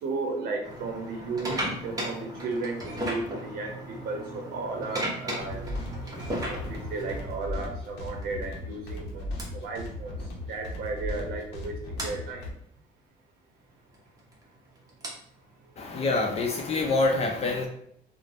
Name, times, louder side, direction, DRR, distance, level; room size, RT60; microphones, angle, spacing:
voice 1, 0.0-5.7 6.5-9.3 9.5-10.2 10.5-12.4, right 3 dB, 65° right, 2 dB, 0.7 m, -34 dB
sound 1, 0.6-7.4 8.2-8.4 9.4-9.5 10.8-10.9 11.1-11.3 12.0-12.1 13.9-17.0, right 1 dB, 20° right, 0.8 m, -36 dB
sound 2, 5.4-12.5, left 1 dB, 85° left, 0.6 m, -37 dB
voice 2, 15.8-17.7, left 3 dB, 40° left, 2 dB, 0.4 m, -26 dB
3.1 x 2.0 x 2.5 m, 0.68 s
cardioid pair, 110°, 17 cm